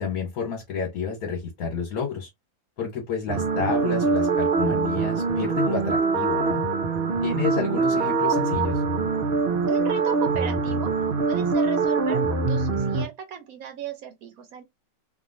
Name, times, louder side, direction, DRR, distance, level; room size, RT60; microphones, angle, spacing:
voice 1, 0.0-2.3 2.8-6.6 7.2-8.8, left 5 dB, 75° left, 1.5 m, -30 dB
sound 1, 3.3-13.1, right 4 dB, 50° right, 0.7 m, -24 dB
voice 2, 9.7-14.6, right 8 dB, 75° right, 1.1 m, -37 dB
3.0 x 2.6 x 2.6 m
omnidirectional pair, 1.5 m